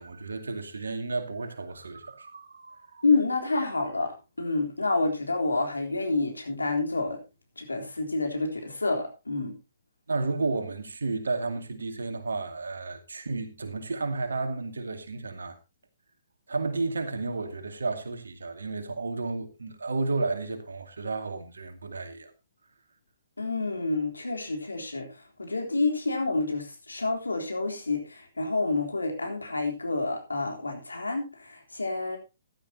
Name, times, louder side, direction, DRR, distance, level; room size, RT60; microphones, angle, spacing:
voice 1, 0.0-3.0 10.1-15.6 16.5-22.3, right 3 dB, 70° right, 2.3 m, -32 dB
voice 2, 3.0-7.2 7.6-9.6 23.4-32.2, left 3 dB, 80° left, 3.6 m, -28 dB
15.0 x 11.5 x 2.9 m
figure-of-eight pair, 125°, 0 cm